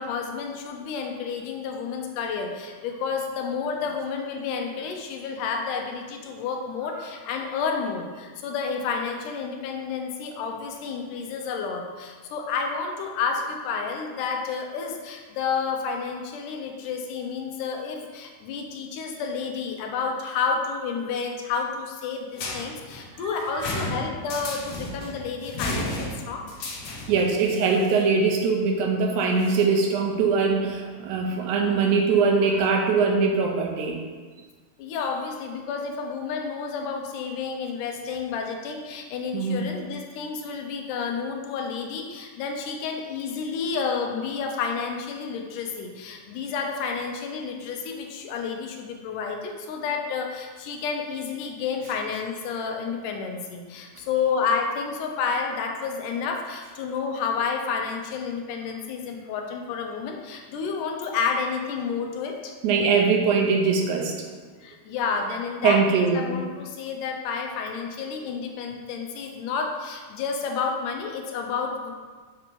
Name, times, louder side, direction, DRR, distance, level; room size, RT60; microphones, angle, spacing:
voice 1, 0.0-26.5 26.8-27.1 34.8-62.5 64.6-71.9, left 5 dB, 90° left, 2 dB, 2.3 m, -30 dB
sound 1, 22.4-27.3, left 2 dB, 65° left, 1.7 m, -33 dB
voice 2, 27.1-34.0 39.3-39.7 62.6-64.2 65.6-66.4, right 4 dB, 80° right, 1 dB, 2.0 m, -22 dB
7.1 x 2.9 x 5.1 m, 1.5 s
omnidirectional pair, 3.6 m